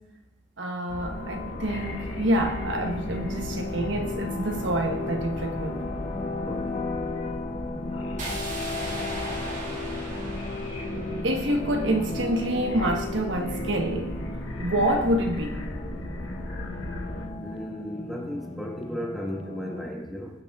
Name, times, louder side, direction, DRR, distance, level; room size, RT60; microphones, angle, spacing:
voice 1, 0.6-5.9 11.2-14.1 14.6-15.7, right 1 dB, 65° right, 3 dB, 1.4 m, -27 dB
sound 1, 0.9-17.3, left 1 dB, 75° left, 2.2 m, -36 dB
sound 2, 1.1-19.9, left 2 dB, 30° left, 0.7 m, -36 dB
voice 2, 6.4-6.8 17.4-20.3, equal, ahead, -2 dB, 1.7 m, -35 dB
sound 3, 8.2-12.2, right 1 dB, 40° right, 2.1 m, -38 dB
20.0 x 8.1 x 3.7 m, 1.0 s
head